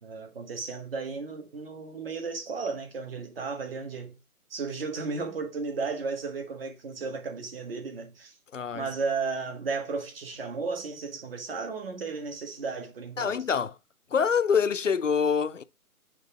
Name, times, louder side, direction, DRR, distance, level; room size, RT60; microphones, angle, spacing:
voice 1, 0.0-4.2 4.5-8.3 8.7-13.4, right 4 dB, 40° right, 1.6 m, -34 dB
voice 2, 8.5-8.9 13.2-13.7 14.1-15.6, left 6 dB, 55° left, 0.6 m, -25 dB
8.3 x 3.6 x 4.9 m
figure-of-eight pair, 150°, 45 cm